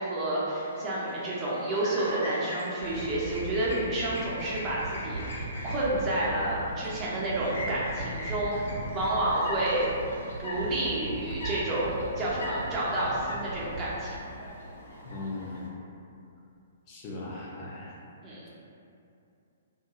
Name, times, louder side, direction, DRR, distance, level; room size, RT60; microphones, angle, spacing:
voice 1, 0.0-9.8 10.4-14.2 18.2-18.5, right 1 dB, 25° right, -7 dB, 0.6 m, -30 dB
Chirp tweet, 0.5-15.7, left 1 dB, 65° left, 0.7 m, -41 dB
sound 1, 2.8-15.0 15.6-15.7, right 2 dB, 65° right, 0.4 m, -39 dB
voice 2, 15.0-15.7 16.9-18.0, left 2 dB, 30° left, -4 dB, 0.5 m, -38 dB
2.3 x 2.1 x 2.9 m, 2.6 s
figure-of-eight pair, 120°, 0 cm